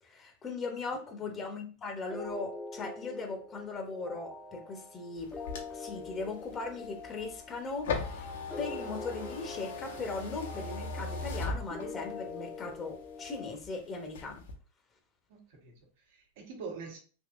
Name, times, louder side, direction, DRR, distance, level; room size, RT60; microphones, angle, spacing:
voice 1, 0.0-5.3 5.7-8.3 8.6-14.4, left 3 dB, 25° left, 0.8 m, -39 dB
voice 2, 0.9-1.3 15.3-17.0, right 4 dB, 60° right, 1.1 m, -46 dB
sound 1, 2.1-13.5, left 3 dB, 10° left, 0.4 m, -44 dB
sound 2, 5.2-12.2 12.7-13.7 14.0-14.5, left 3 dB, 70° left, 0.8 m, -39 dB
3.6 x 2.7 x 2.5 m
hypercardioid pair, 105°, 0 cm